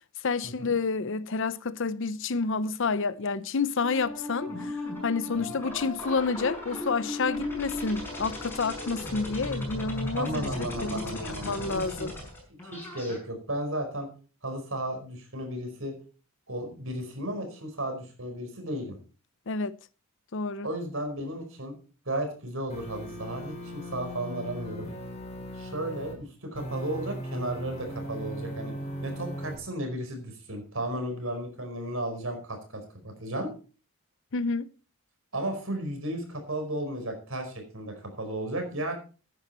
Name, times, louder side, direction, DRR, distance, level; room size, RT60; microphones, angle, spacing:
voice 1, 0.2-10.5 10.8-12.1 19.5-19.8 20.3-20.7 34.3-34.7, left 4 dB, 60° left, 0.7 m, -29 dB
sound 1, 3.8-13.2, left 1 dB, 10° left, 6.2 m, -36 dB
voice 2, 10.2-12.1 12.6-14.1 14.4-15.9 16.5-19.0 20.6-21.7 22.0-24.9 25.5-28.7 29.0-33.5 35.3-38.9, right 1 dB, 65° right, 5.0 m, -34 dB
sound 2, 22.7-26.2 26.5-29.6, equal, 30° left, 4.1 m, -38 dB
14.5 x 10.5 x 4.3 m
head